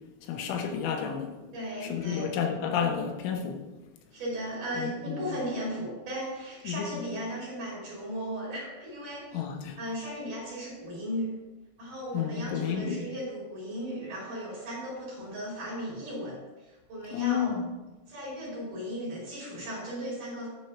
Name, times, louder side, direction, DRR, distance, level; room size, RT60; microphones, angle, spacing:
voice 1, 0.2-1.4 1.8-3.6 4.8-5.3 6.7-6.9 9.3-9.8 12.1-13.0 17.1-17.6, left 7 dB, 80° left, 3 dB, 3.2 m, -31 dB
voice 2, 1.5-2.3 4.1-9.4 9.8-11.3 11.8-17.6 18.1-20.5, equal, 50° right, -5 dB, 3.1 m, -36 dB
9.5 x 4.7 x 5.7 m, 1.1 s
omnidirectional pair, 5.6 m